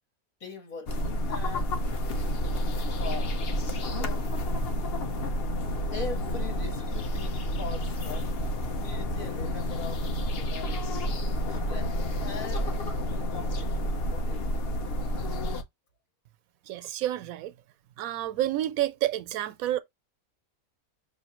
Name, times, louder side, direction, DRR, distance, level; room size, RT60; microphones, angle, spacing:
voice 1, 0.4-0.9 1.3-1.7 2.9-3.3 4.0-4.2 5.9-8.3 8.8-10.0 10.4-11.1 11.5-11.9 12.2-12.7 13.3-14.5, left 4 dB, 90° left, 2.6 m, -41 dB
sound 1, 0.9-15.6, equal, 50° left, 1.0 m, -30 dB
voice 2, 16.7-17.5 18.0-19.8, right 13 dB, 85° right, 1.1 m, -29 dB
6.3 x 2.6 x 2.9 m
omnidirectional pair, 1.4 m